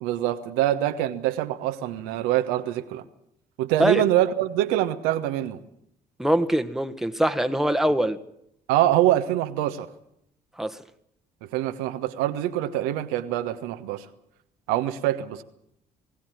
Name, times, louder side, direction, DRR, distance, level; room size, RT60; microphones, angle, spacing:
voice 1, 0.0-3.0 3.6-5.6 8.7-9.9 11.5-14.0 14.7-15.4, right 13 dB, 75° right, 8 dB, 1.2 m, -24 dB
voice 2, 6.2-8.2 10.6-10.8, equal, ahead, 8 dB, 1.5 m, -23 dB
20.5 x 17.0 x 9.2 m, 0.76 s
hypercardioid pair, 50°, 21 cm